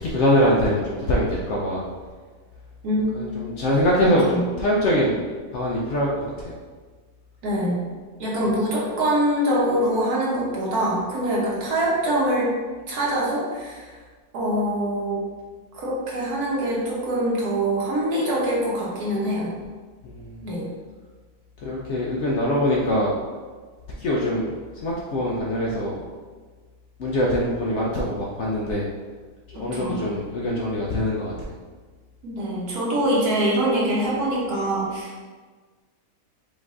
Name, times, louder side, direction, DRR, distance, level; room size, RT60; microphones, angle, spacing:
voice 1, 0.0-1.8 3.1-5.2 5.5-6.1 6.4-6.5 20.0-20.3 21.6-23.1 24.0-24.5 24.8-26.0 27.0-28.9 29.6-31.3, equal, 60° left, -4 dB, 0.8 m, -23 dB
voice 2, 7.4-7.8 8.2-12.5 12.9-14.0 14.3-15.3 15.7-19.5 20.4-20.7 29.5-30.0 32.2-35.2, right 1 dB, 70° right, -5 dB, 1.5 m, -24 dB
5.2 x 2.5 x 3.6 m, 1.4 s
omnidirectional pair, 1.7 m